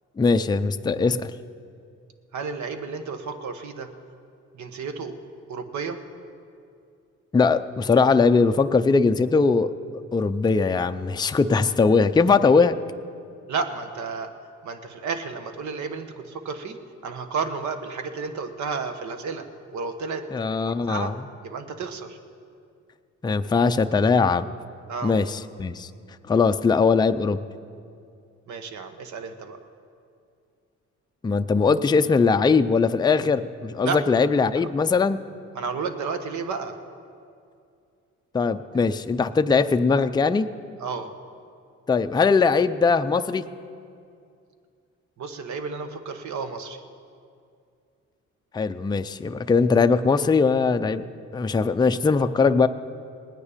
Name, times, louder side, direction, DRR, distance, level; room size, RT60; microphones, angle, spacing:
voice 1, 0.2-1.3 7.3-9.7 10.1-12.8 20.3-21.1 23.2-24.5 25.0-25.9 26.3-27.4 31.2-35.2 38.3-40.5 41.9-43.4 48.5-51.0 51.3-52.7, left 4 dB, 15° left, 9 dB, 0.4 m, -20 dB
voice 2, 2.3-3.9 4.5-5.1 5.5-6.0 13.5-14.3 14.6-16.8 17.0-19.4 19.7-20.2 20.6-22.2 24.9-25.1 28.5-29.6 33.8-34.0 34.6-34.7 35.5-36.8 40.8-41.1 45.2-46.8, right 5 dB, 70° right, 8 dB, 1.2 m, -32 dB
19.5 x 9.6 x 5.1 m, 2.4 s
cardioid pair, 90°, 30 cm